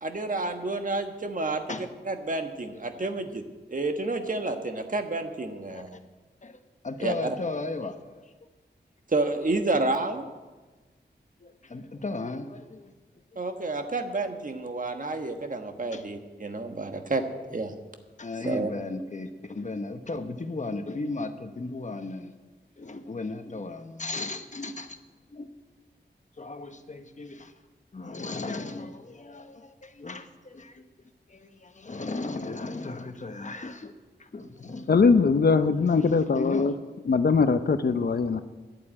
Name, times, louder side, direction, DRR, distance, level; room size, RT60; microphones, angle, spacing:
voice 1, 0.0-1.6 2.1-3.4 3.7-6.0 7.0-7.4 9.1-10.3 13.4-17.2 17.5-17.7 18.4-18.7, right 2 dB, 45° right, 6 dB, 1.4 m, -29 dB
voice 2, 6.4-8.2 11.4-12.9 13.3-13.4 15.9-16.0 18.2-22.3 22.8-25.0 25.3-25.5 26.4-27.5 27.9-30.9 31.3-33.9 34.2-34.9 35.9-36.8, left 2 dB, 40° left, 8 dB, 1.0 m, -36 dB
voice 3, 34.9-36.7 37.1-38.4, left 4 dB, 60° left, 11 dB, 0.7 m, -21 dB
11.0 x 8.4 x 8.7 m, 1.3 s
wide cardioid pair, 75°, 18 cm